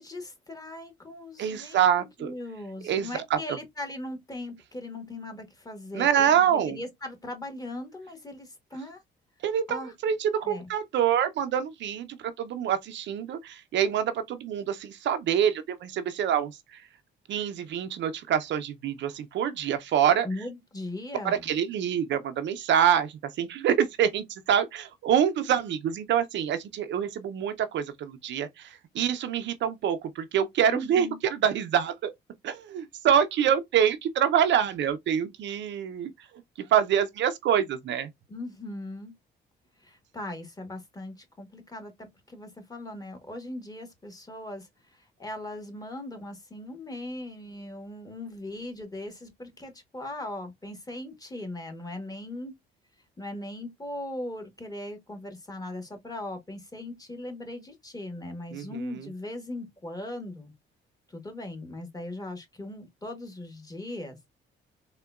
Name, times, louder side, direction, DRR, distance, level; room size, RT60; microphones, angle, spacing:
voice 1, 0.0-9.0 9.7-9.9 10.4-10.7 20.2-21.5 30.7-31.2 38.3-39.1 39.8-52.5 53.2-60.5 61.1-64.2, left 1 dB, 20° left, 1.1 m, -39 dB
voice 2, 1.4-2.3 2.8-3.4 5.9-6.8 9.4-16.8 17.3-20.3 21.2-32.1 32.4-36.1 36.7-38.1 58.5-59.1, right 9 dB, 65° right, 0.5 m, -26 dB
3.5 x 2.2 x 2.2 m
cardioid pair, 90°, 20 cm